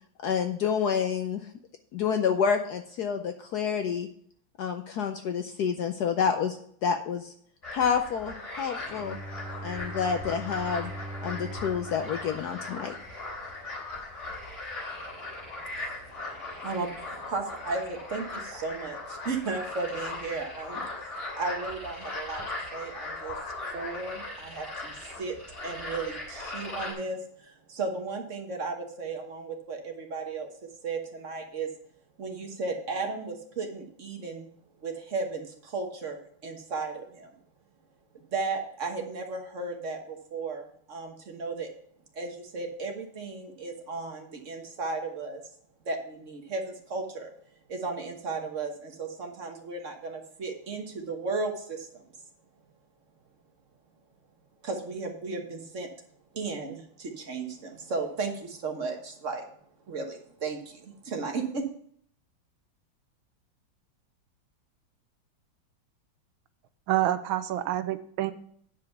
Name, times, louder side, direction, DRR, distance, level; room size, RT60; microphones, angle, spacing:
voice 1, 0.2-1.4 1.9-4.1 4.6-7.3 7.7-9.2 9.6-10.9 11.2-13.0, left 7 dB, 70° left, 6 dB, 1.0 m, -28 dB
sound 1, 7.6-26.9, left 2 dB, 35° left, 3.3 m, -39 dB
Bowed string instrument, 8.8-14.1, right 1 dB, ahead, 1.0 m, -42 dB
voice 2, 14.9-21.1 21.4-22.4 22.7-23.4 23.7-25.4 25.6-31.7 32.2-34.5 34.8-37.3 38.1-41.7 42.1-45.4 45.8-47.3 47.7-52.1 54.6-55.9 56.3-59.4 59.9-61.7, right 3 dB, 40° right, 3 dB, 1.4 m, -35 dB
voice 3, 66.9-68.3, right 13 dB, 85° right, 12 dB, 1.4 m, -27 dB
9.5 x 5.0 x 5.8 m, 0.63 s
omnidirectional pair, 2.3 m